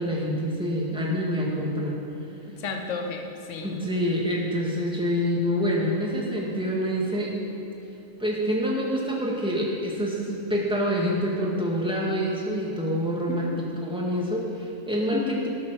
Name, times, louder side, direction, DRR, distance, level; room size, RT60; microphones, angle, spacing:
voice 1, 0.0-2.0 3.6-7.3 8.2-15.5, equal, 5° right, -3 dB, 1.8 m, -26 dB
voice 2, 2.3-3.8 13.3-13.7 15.1-15.5, left 4 dB, 55° left, 4 dB, 1.3 m, -33 dB
14.0 x 7.6 x 6.3 m, 2.8 s
omnidirectional pair, 1.6 m